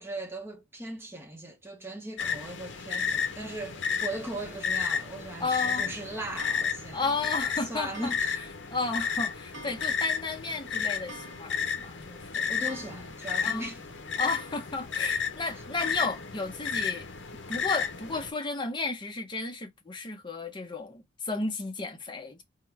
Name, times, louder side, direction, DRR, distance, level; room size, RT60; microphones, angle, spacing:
voice 1, 0.0-7.3 7.7-8.4 12.3-13.9 15.4-15.5, right 1 dB, 10° right, 0.7 m, -39 dB
sound 1, 2.2-18.3, left 6 dB, 65° left, 0.8 m, -32 dB
voice 2, 5.4-5.9 6.9-13.0 13.4-13.7 14.2-17.1 17.5-22.4, left 3 dB, 25° left, 0.7 m, -33 dB
Clock, 6.4-7.1 7.9-8.7 9.0-9.1 9.5-10.3 10.6-10.7 10.9-11.9 12.2-12.3 12.7-13.5 14.2-14.9 15.8-16.3, right 1 dB, 75° right, 1.1 m, -48 dB
3.7 x 2.1 x 4.4 m
head